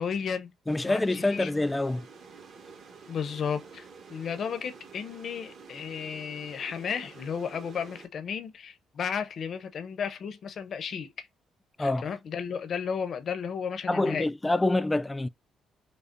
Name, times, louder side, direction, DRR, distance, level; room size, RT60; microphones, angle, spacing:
voice 1, 0.0-0.5 0.8-1.5 3.1-11.1 11.8-14.3, left 7 dB, 55° left, 0.6 m, -34 dB
voice 2, 0.7-2.1 11.8-12.1 13.9-15.3, left 2 dB, 15° left, 0.3 m, -26 dB
sound 1, 0.7-8.1, right 5 dB, 60° right, 1.3 m, -49 dB
5.3 x 2.0 x 2.5 m
cardioid pair, 90°, 0 cm